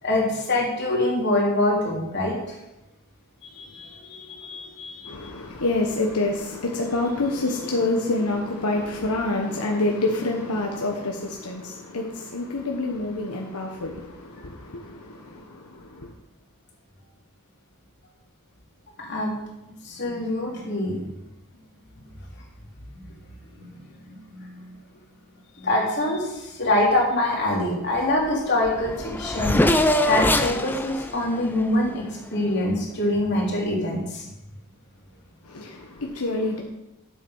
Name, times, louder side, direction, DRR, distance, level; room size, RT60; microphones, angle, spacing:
voice 1, 0.0-2.5 3.4-5.1 19.0-19.5 19.8-21.1 22.9-23.0 23.6-23.7 24.3-24.7 25.6-29.6 30.1-34.2, left 1 dB, 50° left, 3.2 m, -25 dB
voice 2, 5.0-16.1 35.4-36.6, left 2 dB, 90° left, 1.3 m, -27 dB
Race car auto racing / Accelerating revving vroom, 28.3-28.4 28.6-32.6, left 1 dB, 10° left, 0.6 m, -24 dB
9.9 x 7.7 x 5.6 m
head